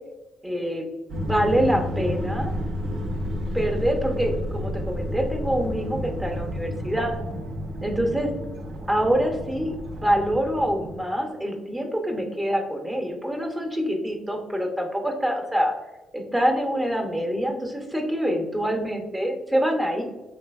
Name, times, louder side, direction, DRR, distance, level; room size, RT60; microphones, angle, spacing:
voice 1, 0.4-0.8 1.2-2.6 3.5-7.1 7.8-8.3 8.9-15.7 16.1-20.0, equal, 15° right, 2 dB, 0.6 m, -25 dB
sound 1, 1.1-11.0, equal, 65° right, 0.5 m, -31 dB
3.3 x 2.8 x 2.3 m, 1.1 s
cardioid pair, 90°, 0 cm